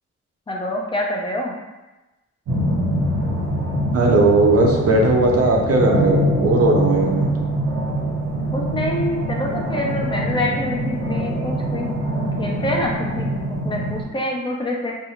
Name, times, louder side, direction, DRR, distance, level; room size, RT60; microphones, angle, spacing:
voice 1, 0.5-1.5 7.9-8.0 8.5-11.9 12.2-14.9, left 1 dB, 15° left, -1 dB, 0.4 m, -26 dB
sound 1, 2.5-14.0, equal, 70° right, 1.2 m, -23 dB
voice 2, 3.9-7.5, right 2 dB, 50° right, 1 dB, 0.5 m, -17 dB
2.5 x 2.3 x 2.8 m, 1.1 s
wide cardioid pair, 135°, 30 cm